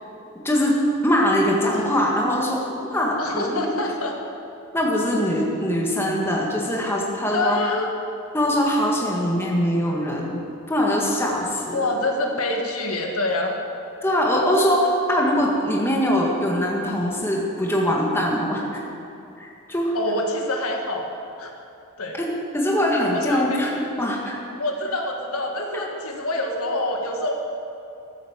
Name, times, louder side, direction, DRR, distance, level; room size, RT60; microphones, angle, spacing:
voice 1, 1.0-3.8 4.7-7.6 8.3-10.4 10.7-11.9 14.0-18.8 19.4-19.9 22.2-24.3 25.7-25.8, equal, 10° left, -3 dB, 1.7 m, -22 dB
voice 2, 1.6-1.9 3.2-4.2 7.3-7.9 11.7-13.6 19.9-21.1 21.4-21.5 22.0-22.2 23.1-23.7 24.6-27.3, left 2 dB, 80° left, 2 dB, 1.7 m, -26 dB
14.5 x 8.4 x 7.3 m, 2.8 s
head